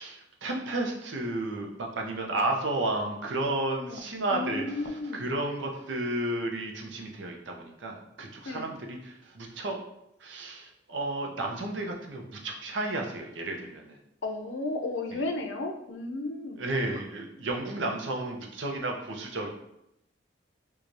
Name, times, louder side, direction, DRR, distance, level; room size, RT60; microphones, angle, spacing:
voice 1, 0.0-9.8 10.2-14.0 15.1-15.2 16.6-19.5, right 2 dB, 75° right, 1 dB, 0.7 m, -32 dB
voice 2, 4.3-5.2 8.5-8.7 14.2-16.6 16.9-17.0, left 2 dB, 90° left, 4 dB, 0.5 m, -33 dB
4.6 x 2.3 x 2.6 m, 0.81 s
head